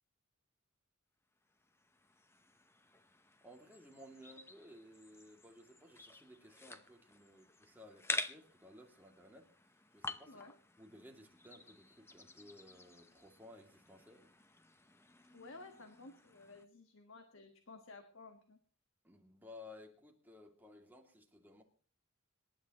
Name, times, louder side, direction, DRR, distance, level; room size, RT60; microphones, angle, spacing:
sound 1, 1.5-16.7, left 2 dB, 10° left, 0.8 m, -49 dB
voice 1, 3.4-9.5 9.9-10.4 10.8-14.3 19.0-21.6, left 1 dB, 10° right, 1 dB, 2.4 m, -57 dB
voice 2, 15.3-18.6, left 3 dB, 65° left, 5 dB, 1.5 m, -54 dB
26.5 x 11.5 x 3.0 m, 0.39 s
head